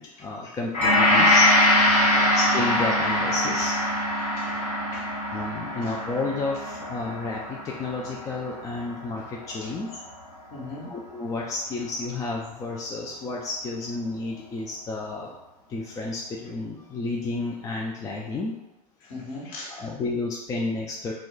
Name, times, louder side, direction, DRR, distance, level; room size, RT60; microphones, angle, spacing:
voice 1, 0.0-1.7 2.3-3.7 5.3-10.0 10.8-15.4 15.7-18.6 19.7-21.1, left 3 dB, 15° left, -2 dB, 0.3 m, -31 dB
Gong, 0.7-9.2 9.5-9.7, left 1 dB, 75° left, 1.2 m, -23 dB
Mallet percussion, 0.8-8.2, right 2 dB, 10° right, 0.7 m, -32 dB
voice 2, 4.3-5.1 9.6-9.7 10.5-10.9 19.0-19.9, left 2 dB, 45° left, -4 dB, 1.2 m, -39 dB
2.3 x 2.1 x 3.8 m, 0.90 s
figure-of-eight pair, 80°, 20 cm